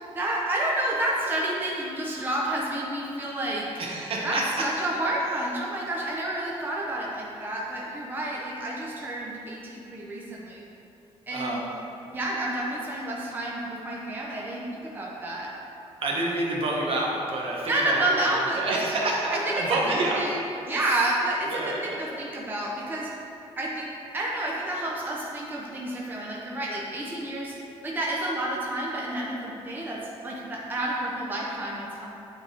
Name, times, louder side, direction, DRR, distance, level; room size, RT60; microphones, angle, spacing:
voice 1, 0.1-3.7 4.2-10.6 11.3-11.6 12.1-15.5 17.7-18.8 19.3-23.1 23.6-27.5 27.8-32.1, right 1 dB, 15° right, -4 dB, 0.7 m, -30 dB
voice 2, 3.8-4.6 11.3-11.6 16.0-20.2 20.9-21.0 21.5-22.0, right 2 dB, 55° right, -3 dB, 1.1 m, -28 dB
8.8 x 3.5 x 3.8 m, 2.9 s
cardioid pair, 140°, 11 cm